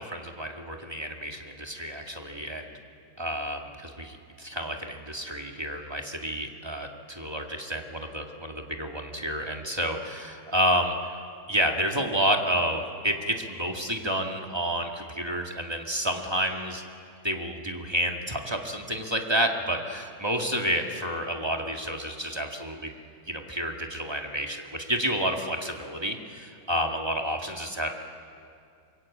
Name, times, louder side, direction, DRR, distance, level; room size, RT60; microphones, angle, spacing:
voice 1, 0.0-2.7 3.2-11.2 11.5-16.8 17.2-22.9 23.3-27.9, equal, 15° right, 2 dB, 1.7 m, -30 dB
23.5 x 22.0 x 8.6 m, 2.4 s
omnidirectional pair, 1.9 m